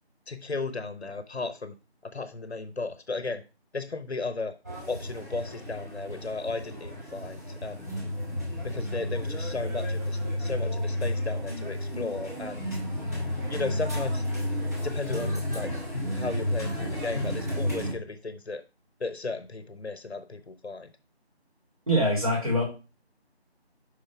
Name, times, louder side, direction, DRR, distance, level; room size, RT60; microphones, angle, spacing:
voice 1, 0.3-1.7 2.0-3.4 3.7-4.5 4.9-7.9 8.6-12.7 13.5-14.2 14.8-15.7 16.1-18.6 19.0-20.9, left 3 dB, 75° left, 10 dB, 1.0 m, -35 dB
sound 1, 4.6-17.9, left 1 dB, 15° right, 1.4 m, -32 dB
voice 2, 21.9-22.6, equal, 35° right, -3 dB, 3.1 m, -23 dB
6.8 x 5.5 x 3.5 m, 0.31 s
figure-of-eight pair, 170°, 32 cm